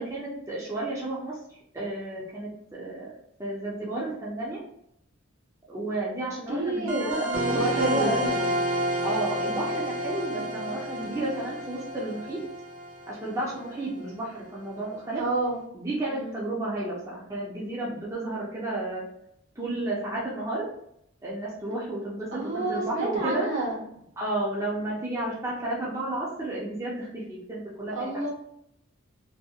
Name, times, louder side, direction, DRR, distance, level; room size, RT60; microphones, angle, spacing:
voice 1, 0.0-1.4 1.7-3.1 3.4-4.6 5.7-8.6 9.0-12.4 13.1-15.2 15.7-19.0 19.6-20.7 21.2-22.3 22.5-23.5 24.2-28.3, right 1 dB, 15° right, -6 dB, 0.5 m, -32 dB
voice 2, 6.5-8.4 10.4-10.7 15.1-15.6 16.1-16.4 22.3-23.8 27.9-28.3, right 1 dB, 75° right, -4 dB, 1.2 m, -29 dB
sound 1, 6.9-14.0, right 1 dB, 90° right, 1.0 m, -30 dB
2.6 x 2.1 x 2.4 m, 0.75 s
head